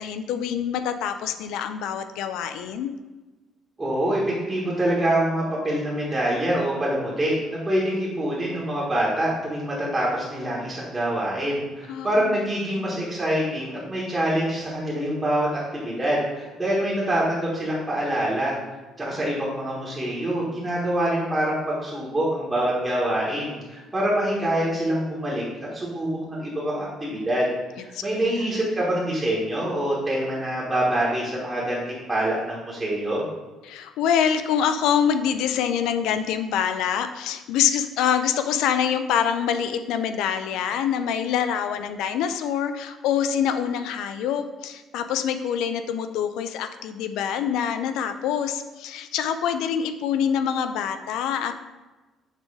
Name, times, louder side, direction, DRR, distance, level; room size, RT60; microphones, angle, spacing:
voice 1, 0.0-2.9 11.9-12.3 12.7-13.0 27.9-28.5 33.6-51.5, left 8 dB, 85° left, 9 dB, 0.4 m, -25 dB
voice 2, 3.8-4.2 4.5-18.6 19.0-25.4 25.7-27.5 27.7-33.2, right 1 dB, 15° right, -7 dB, 1.3 m, -25 dB
6.6 x 3.2 x 4.7 m, 1.2 s
cardioid pair, 155°, 0 cm